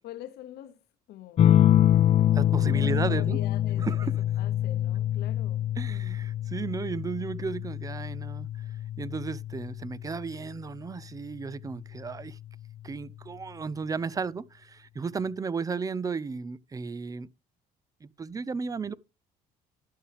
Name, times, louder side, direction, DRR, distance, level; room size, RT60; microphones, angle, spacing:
voice 1, 0.0-0.8 1.1-1.6 2.7-5.7, left 12 dB, 75° left, 0.9 m, -44 dB
sound 1, 1.4-10.5 11.9-12.5, left 11 dB, 40° left, 0.4 m, -25 dB
voice 2, 2.3-3.4 3.8-4.1 5.8-8.5 9.0-12.4 12.8-17.3 18.0-18.9, right 5 dB, 20° right, 0.5 m, -34 dB
11.5 x 6.9 x 3.4 m
cardioid pair, 110°, 17 cm